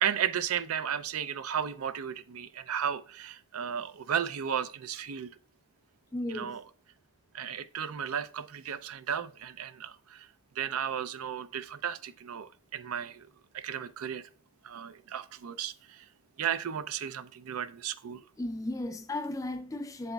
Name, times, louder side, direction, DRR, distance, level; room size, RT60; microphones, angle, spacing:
voice 1, 0.0-5.3 6.3-6.6 7.3-10.3 10.6-13.3 13.5-14.2 14.6-16.0 16.4-18.2, right 8 dB, 90° right, 0.5 m, -34 dB
voice 2, 6.1-6.6 18.4-20.1, left 1 dB, 15° left, 0.4 m, -35 dB
7.7 x 7.0 x 2.3 m
head